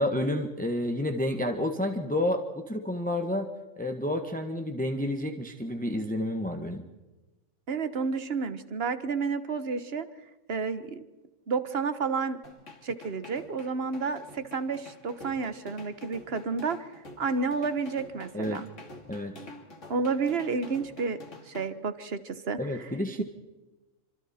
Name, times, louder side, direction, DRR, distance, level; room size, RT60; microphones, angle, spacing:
voice 1, 0.0-3.5 3.8-6.8 18.3-18.6 19.1-19.4 22.6-23.2, left 1 dB, 5° left, 5 dB, 1.3 m, -30 dB
voice 2, 7.7-10.1 10.5-11.0 11.5-12.4 12.8-16.9 17.2-18.6 19.9-22.6, right 4 dB, 45° right, 12 dB, 1.4 m, -30 dB
sound 1, 12.4-21.7, left 2 dB, 55° left, 2.9 m, -48 dB
27.5 x 26.0 x 4.4 m, 1.1 s
omnidirectional pair, 1.5 m